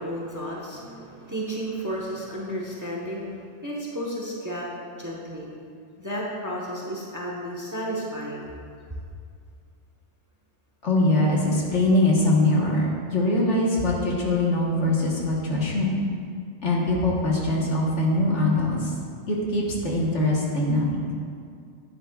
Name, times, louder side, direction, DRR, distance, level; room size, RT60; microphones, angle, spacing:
voice 1, 0.0-4.7 5.0-5.5 6.0-8.5, equal, 15° right, -3 dB, 1.0 m, -32 dB
voice 2, 10.8-16.0 16.6-18.9 19.3-21.0, left 1 dB, 60° left, -3 dB, 1.6 m, -22 dB
10.5 x 10.0 x 2.4 m, 2.3 s
omnidirectional pair, 1.3 m